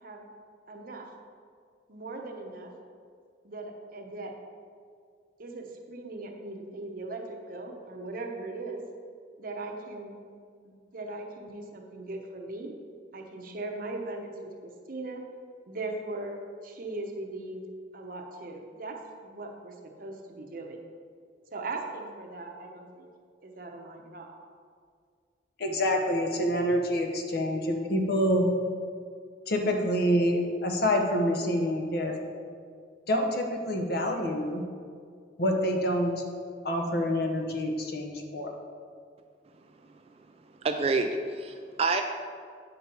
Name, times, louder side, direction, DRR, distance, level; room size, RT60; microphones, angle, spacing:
voice 1, 0.7-1.1 1.9-2.7 3.4-4.3 5.4-8.8 9.4-10.2 10.6-12.7 13.1-15.2 15.7-17.6 17.9-20.8 21.5-23.1 23.4-24.3, right 2 dB, 50° right, 2 dB, 0.9 m, -39 dB
voice 2, 25.6-28.5 29.5-32.1 33.1-34.6 35.4-36.2 36.6-38.5, equal, 55° left, 2 dB, 0.9 m, -27 dB
voice 3, 40.6-42.0, right 3 dB, 35° right, 5 dB, 0.3 m, -27 dB
8.4 x 5.4 x 4.4 m, 2.1 s
head